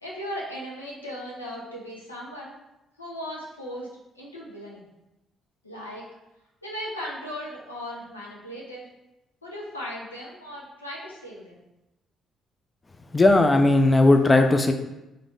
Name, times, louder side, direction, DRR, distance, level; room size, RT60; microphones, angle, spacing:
voice 1, 0.0-2.6 3.0-3.9 4.1-4.9 5.6-6.0 6.6-8.9 9.4-11.6, equal, 85° left, -5 dB, 0.6 m, -37 dB
voice 2, 13.1-14.7, left 2 dB, 25° left, 6 dB, 0.3 m, -17 dB
3.8 x 2.6 x 3.5 m, 0.94 s
figure-of-eight pair, 45°, 0 cm